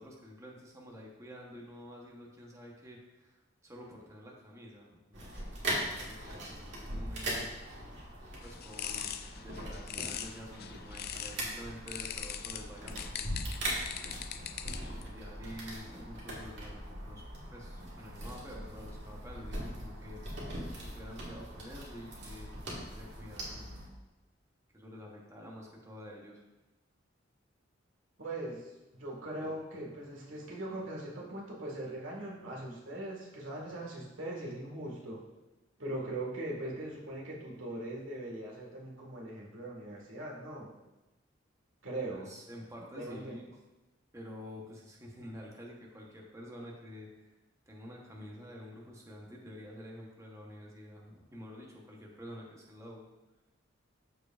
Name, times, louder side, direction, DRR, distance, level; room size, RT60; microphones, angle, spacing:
voice 1, 0.0-7.5 8.4-13.3 14.8-17.2 17.5-20.4 20.8-23.7 24.7-26.4 42.2-43.5 44.1-47.3 47.7-53.0, equal, 15° right, -2 dB, 1.1 m, -49 dB
sound 1, 5.1-23.9, right 1 dB, 65° right, 2.0 m, -41 dB
sound 2, 8.4-11.4 11.9-15.0, left 10 dB, 55° left, 0.4 m, -41 dB
voice 2, 28.2-35.2 35.8-40.7 41.8-42.3 43.0-43.4, right 1 dB, 85° right, -2 dB, 1.8 m, -40 dB
13.0 x 4.7 x 2.5 m, 1.0 s
head